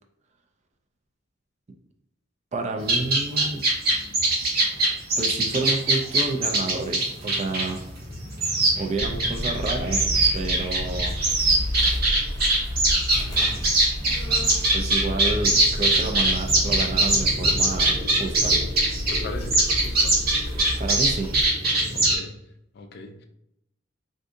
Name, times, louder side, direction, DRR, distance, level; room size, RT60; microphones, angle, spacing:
voice 1, 2.5-3.6 5.2-7.8 8.8-10.1 10.3-11.2 13.1-13.7 14.7-18.6 20.8-21.3, right 3 dB, 35° right, 4 dB, 0.4 m, -30 dB
sound 1, 2.8-22.2, right 2 dB, 50° right, 1.0 m, -22 dB
sound 2, 9.0-21.5, left 1 dB, 20° left, 0.9 m, -32 dB
voice 2, 19.1-20.1 21.9-22.4 22.7-23.2, left 2 dB, 55° left, 5 dB, 0.4 m, -39 dB
3.6 x 2.6 x 2.5 m, 0.80 s
head